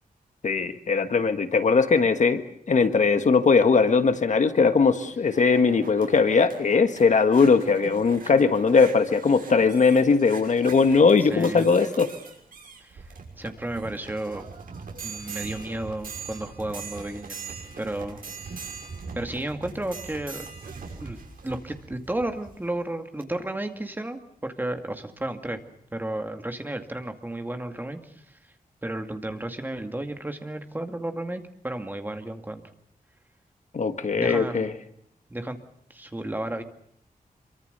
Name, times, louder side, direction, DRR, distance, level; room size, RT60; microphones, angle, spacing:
voice 1, 0.4-12.1 33.7-34.7, left 4 dB, 55° left, 9 dB, 1.5 m, -20 dB
sound 1, 5.0-22.6 23.2-23.3, right 5 dB, 70° right, 6.1 m, -41 dB
voice 2, 11.3-11.7 12.8-13.1 13.4-14.4 15.0-17.4 17.8-18.2 19.1-20.5 21.0-21.2 21.4-25.6 25.9-28.4 28.8-32.6 34.2-34.7 35.3-35.6 35.9-36.6, right 1 dB, 15° right, 6 dB, 2.1 m, -33 dB
27.0 x 24.0 x 6.7 m, 0.67 s
wide cardioid pair, 175°, 15 cm